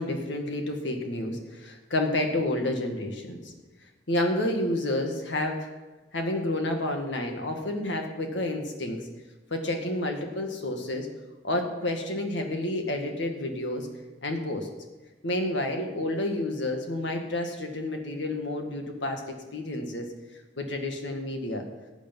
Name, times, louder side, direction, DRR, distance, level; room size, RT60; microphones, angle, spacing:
voice 1, 0.0-3.5 4.1-5.7 6.1-9.0 9.5-11.1 11.4-13.9 14.2-14.7 15.2-20.1 20.6-21.6, left 1 dB, 75° left, 4 dB, 1.9 m, -30 dB
15.0 x 8.5 x 5.4 m, 1.2 s
head